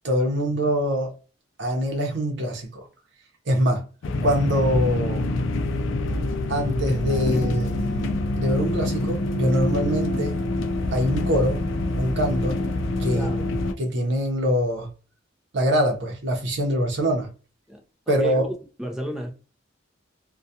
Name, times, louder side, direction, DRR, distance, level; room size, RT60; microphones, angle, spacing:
voice 1, 0.0-1.1 1.6-2.9 3.5-3.8 4.2-5.3 6.5-10.4 10.9-11.6 12.0-12.6 13.0-13.3 13.8-14.9 15.5-17.3 18.1-18.5, equal, 65° right, 0.7 m, -24 dB
sound 1, 4.0-13.7, left 2 dB, 85° left, 0.4 m, -26 dB
voice 2, 13.1-13.5 17.7-18.4 18.8-19.3, equal, 5° right, 0.4 m, -32 dB
2.3 x 2.2 x 2.7 m
head